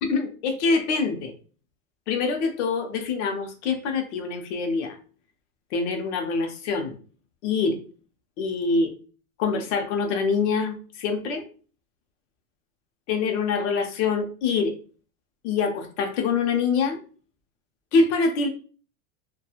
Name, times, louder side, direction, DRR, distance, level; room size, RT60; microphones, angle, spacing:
voice 1, 0.0-1.3 2.1-5.0 5.7-7.0 7.4-7.8 8.4-8.9 9.4-11.4 13.1-14.7 15.4-17.0 17.9-18.5, left 4 dB, 60° left, 5 dB, 0.7 m, -25 dB
2.9 x 2.3 x 2.3 m, 0.40 s
supercardioid pair, 155°, 39 cm